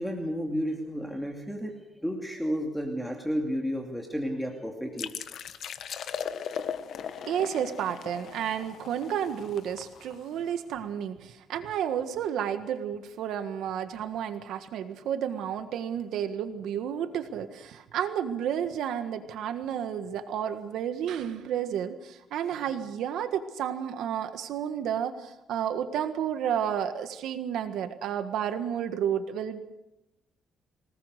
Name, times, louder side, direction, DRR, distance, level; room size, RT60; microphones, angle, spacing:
voice 1, 0.0-1.8 2.0-5.1, equal, ahead, 1 dB, 2.6 m, -32 dB
sound 1, 5.0-10.5, left 8 dB, 60° left, 1.4 m, -38 dB
voice 2, 7.3-29.6, right 9 dB, 80° right, 9 dB, 1.5 m, -31 dB
25.5 x 19.0 x 6.6 m, 0.95 s
cardioid pair, 135°, 0 cm